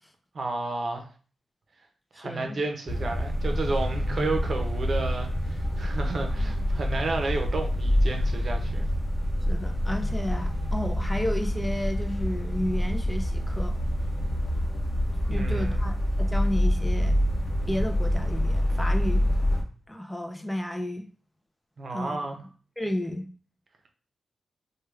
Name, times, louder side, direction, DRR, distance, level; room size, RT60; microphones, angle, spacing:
voice 1, 0.3-1.1 2.1-8.8 15.3-15.8 21.8-22.4, right 3 dB, 55° right, 0.7 m, -32 dB
voice 2, 2.1-2.6 9.5-13.8 15.3-17.2 17.7-19.3 19.9-21.1 21.9-22.3 22.8-23.3, left 1 dB, 10° left, 0.5 m, -32 dB
sound 1, 2.9-19.6, equal, 40° left, 1.4 m, -26 dB
sound 2, 4.4-9.9, left 1 dB, 70° left, 0.7 m, -44 dB
3.4 x 2.3 x 3.1 m
cardioid pair, 90°, 0 cm